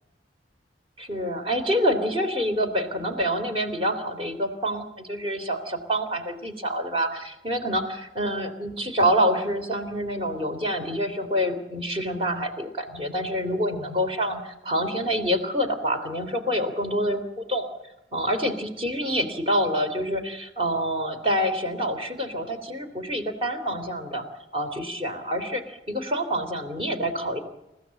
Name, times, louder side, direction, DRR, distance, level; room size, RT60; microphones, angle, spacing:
voice 1, 1.0-17.7 18.1-24.2 24.5-27.4, equal, 35° right, 7 dB, 3.3 m, -27 dB
29.0 x 15.5 x 7.8 m, 0.96 s
head